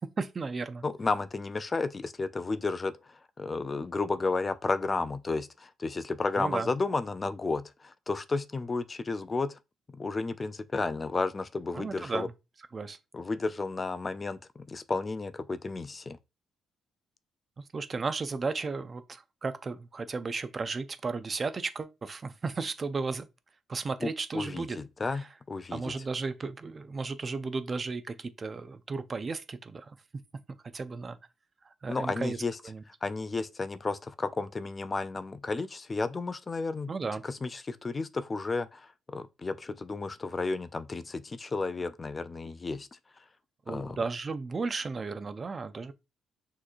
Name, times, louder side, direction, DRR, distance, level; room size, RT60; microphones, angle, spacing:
voice 1, 0.2-0.8 6.4-6.7 11.7-12.3 12.7-13.0 17.7-23.3 23.7-24.8 25.1-25.3 25.7-30.0 30.7-31.2 31.6-32.4 32.6-32.8 36.9-37.2 43.7-45.9, right 4 dB, 35° right, 0.4 m, -34 dB
voice 2, 0.8-2.9 3.4-9.6 9.9-12.3 13.1-16.2 24.0-24.1 24.3-25.9 31.9-32.6 33.0-36.9 37.2-42.9 43.7-44.0, left 3 dB, 30° left, 0.3 m, -32 dB
6.2 x 2.9 x 2.5 m
cardioid pair, 90°, 0 cm